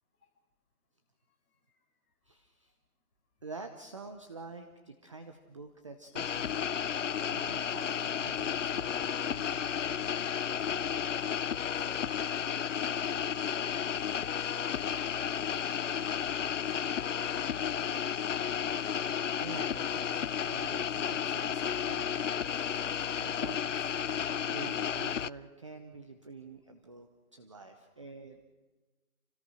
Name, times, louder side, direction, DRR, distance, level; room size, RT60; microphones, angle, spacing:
voice 1, 2.2-2.7 3.4-10.1 19.4-20.2 20.5-22.4 23.1-23.9 24.2-28.4, right 3 dB, 20° right, 6 dB, 0.8 m, -48 dB
sound 1, 6.2-25.3, left 8 dB, 55° left, 0.6 m, -32 dB
voice 2, 11.6-18.6 27.7-27.9, left 4 dB, 15° left, -3 dB, 5.4 m, -60 dB
28.5 x 17.5 x 6.3 m, 1.2 s
hypercardioid pair, 170°, 45 cm